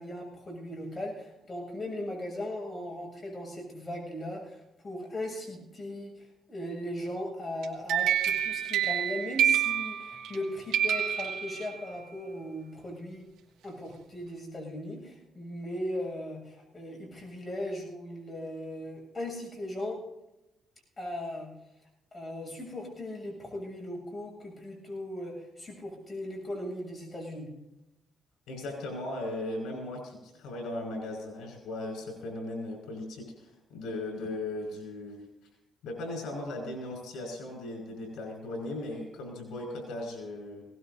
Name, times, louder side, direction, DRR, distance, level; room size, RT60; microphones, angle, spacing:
voice 1, 0.0-13.2 13.6-20.0 21.0-21.5 22.1-27.5, left 1 dB, 25° left, 0 dB, 7.2 m, -38 dB
sound 1, 7.6-10.4 10.7-12.0, right 10 dB, 90° right, 2.3 m, -28 dB
voice 2, 28.5-35.2 35.8-40.6, left 2 dB, 85° left, 1 dB, 5.5 m, -37 dB
21.0 x 18.5 x 2.8 m, 0.92 s
cardioid pair, 90°, 0 cm